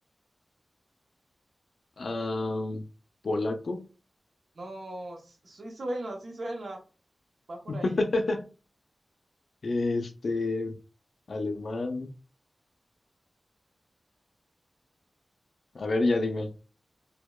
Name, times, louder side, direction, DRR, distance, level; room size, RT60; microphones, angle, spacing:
voice 1, 2.0-2.8 3.2-3.8 7.7-8.5 9.6-10.8 11.3-12.1 15.7-16.5, left 2 dB, 70° left, 5 dB, 0.4 m, -29 dB
voice 2, 4.5-6.8 7.5-8.0, right 1 dB, 75° right, 2 dB, 0.7 m, -37 dB
2.8 x 2.0 x 2.2 m, 0.34 s
wide cardioid pair, 90°, 0 cm